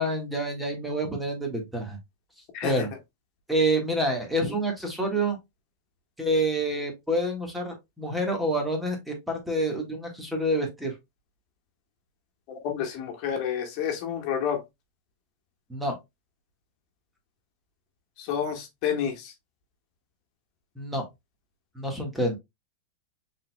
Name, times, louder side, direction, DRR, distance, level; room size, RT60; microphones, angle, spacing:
voice 1, 0.0-2.0 2.6-2.9 3.5-5.4 6.2-10.9 15.7-15.9 20.8-21.0 21.7-22.3, right 1 dB, 5° right, 1.5 m, -27 dB
voice 2, 2.5-2.9 12.5-14.6 18.2-19.3, left 8 dB, 50° left, 1.4 m, -29 dB
5.5 x 3.7 x 2.2 m
supercardioid pair, 135°, 0 cm